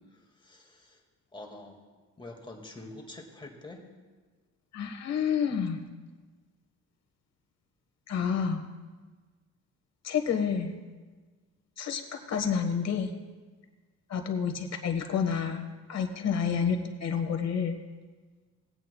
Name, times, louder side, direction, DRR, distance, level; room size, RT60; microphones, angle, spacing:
voice 1, 0.1-1.0 1.3-1.8 2.2-3.8, left 2 dB, 15° left, 1 dB, 1.9 m, -46 dB
voice 2, 4.7-5.8 8.1-8.6 10.0-10.7 11.8-13.1 14.1-15.6 15.9-17.8, left 7 dB, 60° left, 4 dB, 1.4 m, -29 dB
19.0 x 8.9 x 2.3 m, 1.4 s
cardioid pair, 90°, 30 cm